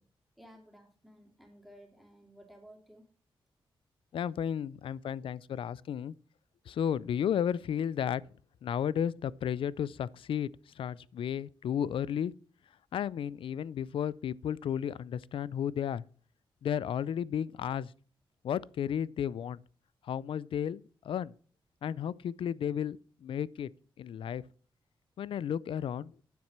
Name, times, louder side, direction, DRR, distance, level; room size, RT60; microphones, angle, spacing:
voice 1, 0.4-3.0, equal, ahead, 2.6 m, -55 dB
voice 2, 4.1-6.1 6.7-8.2 8.6-10.5 10.8-12.3 12.9-16.0 16.6-17.9 18.4-19.6 20.0-21.3 21.8-23.7 24.0-24.4 25.2-26.1, left 9 dB, 75° left, 0.4 m, -33 dB
9.5 x 7.3 x 5.9 m
wide cardioid pair, 110°, 9 cm